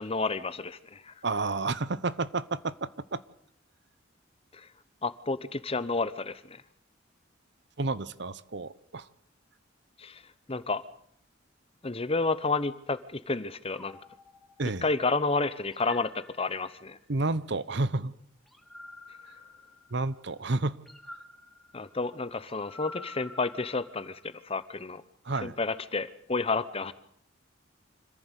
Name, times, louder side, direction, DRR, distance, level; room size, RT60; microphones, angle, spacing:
voice 1, 0.0-1.1 4.5-4.7 5.0-6.6 10.0-10.2 10.5-10.8 11.8-14.0 14.8-17.0 21.7-25.0 25.4-26.9, left 3 dB, 30° left, 14 dB, 1.0 m, -30 dB
voice 2, 1.2-3.2 7.8-9.1 14.6-14.9 17.1-18.1 19.9-20.8 25.2-25.5, right 3 dB, 60° right, 17 dB, 1.0 m, -30 dB
sound 1, 13.7-15.1 15.7-17.0 18.5-20.2 20.8-24.4, left 2 dB, ahead, 2.2 m, -49 dB
26.5 x 15.0 x 8.3 m, 0.67 s
head